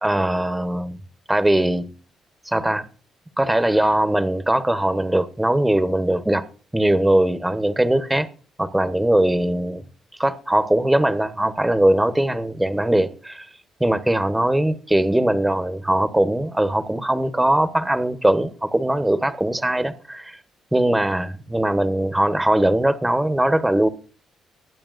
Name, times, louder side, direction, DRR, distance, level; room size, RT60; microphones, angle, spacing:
voice 1, 0.0-1.0 1.3-1.9 2.5-2.9 3.4-6.4 6.7-8.3 8.6-9.9 10.2-13.5 13.8-20.4 20.7-23.9, right 1 dB, 10° right, 1.0 m, -20 dB
21.5 x 8.8 x 2.5 m
cardioid pair, 90°, 0 cm